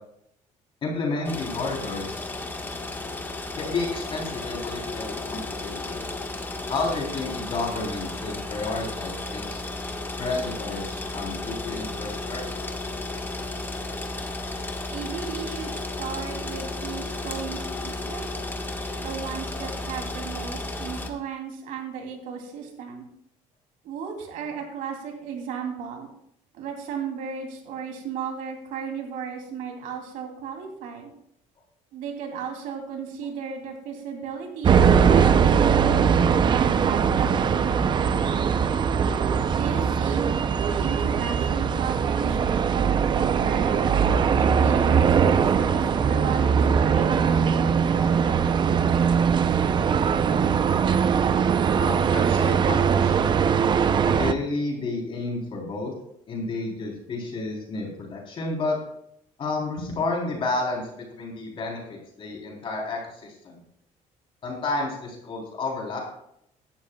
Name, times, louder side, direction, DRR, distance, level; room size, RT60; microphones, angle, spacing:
voice 1, 0.8-2.2 3.6-6.0 6.7-9.6 10.2-12.6 51.7-53.4 54.0-55.9 56.3-58.8 59.4-63.6 64.4-66.0, left 3 dB, 40° left, -1 dB, 3.5 m, -31 dB
sound 1, 1.3-21.1, left 2 dB, 15° left, 1.4 m, -33 dB
voice 2, 14.9-18.4 18.9-23.1 23.8-26.1 26.5-31.1 31.9-36.1 36.5-38.4 39.5-40.3 40.7-44.0 44.3-48.7, right 7 dB, 85° right, 2 dB, 2.9 m, -35 dB
sound 2, 34.6-54.3, right 7 dB, 35° right, 0.6 m, -21 dB
16.5 x 12.0 x 2.3 m, 0.73 s
cardioid pair, 130°, 13 cm